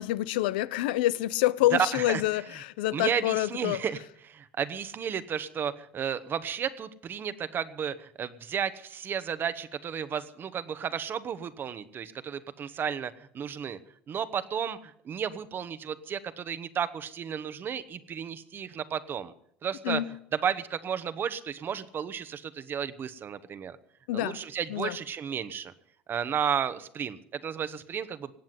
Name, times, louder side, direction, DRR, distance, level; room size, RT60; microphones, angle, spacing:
voice 1, 0.0-3.8 19.8-20.1 24.1-24.4 24.7-25.0, left 15 dB, 85° left, 0.6 m, -27 dB
voice 2, 1.7-2.2 2.9-13.8 14.1-19.3 19.6-20.0 20.3-23.8 24.1-25.7 26.1-28.3, right 8 dB, 45° right, 1.1 m, -33 dB
18.5 x 7.5 x 9.6 m
hypercardioid pair, 75°, 5 cm